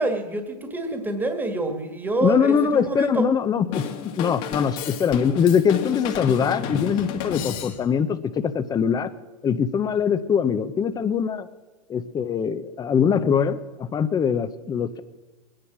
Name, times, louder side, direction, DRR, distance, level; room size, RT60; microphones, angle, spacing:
voice 1, 0.0-3.3, right 2 dB, 10° right, 6 dB, 1.8 m, -26 dB
voice 2, 2.2-9.1 9.4-11.5 11.9-15.0, left 7 dB, 20° left, 11 dB, 0.8 m, -22 dB
Drum kit / Drum, 3.7-8.1, left 8 dB, 50° left, 1.8 m, -32 dB
21.0 x 10.5 x 6.2 m, 1.3 s
hypercardioid pair, 115°, 20 cm